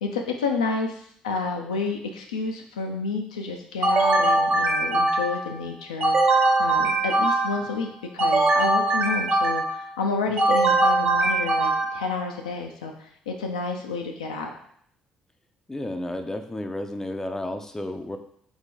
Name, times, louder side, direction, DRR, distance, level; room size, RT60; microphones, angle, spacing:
voice 1, 0.0-14.5, left 4 dB, 80° left, 2 dB, 0.4 m, -30 dB
sound 1, 3.8-5.5 6.0-7.7 8.2-9.8 10.4-12.1, right 2 dB, 50° right, 1.1 m, -21 dB
voice 2, 15.7-18.2, left 1 dB, 10° left, 6 dB, 0.5 m, -32 dB
3.9 x 3.5 x 3.6 m, 0.65 s
figure-of-eight pair, 45°, 4 cm